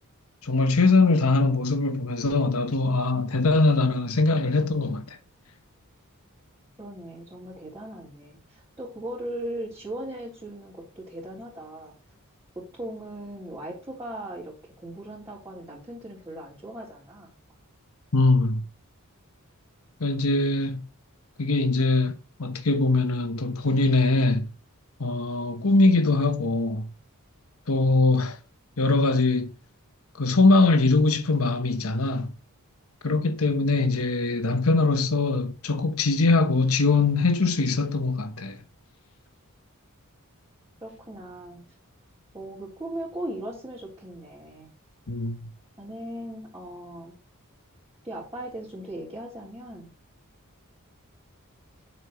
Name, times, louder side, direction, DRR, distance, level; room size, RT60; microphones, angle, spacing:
voice 1, 0.4-5.2 18.1-18.6 20.0-20.8 21.4-22.1 22.4-24.5 25.0-26.9 27.7-28.4 28.8-29.5 30.2-32.3 33.0-38.6 45.1-45.5, left 3 dB, 70° left, 1.1 m, -22 dB
voice 2, 6.8-11.9 12.6-17.3 40.8-41.7 42.3-44.7 45.8-47.2 48.0-49.9, right 1 dB, 15° right, 3.7 m, -38 dB
9.1 x 7.4 x 3.1 m
head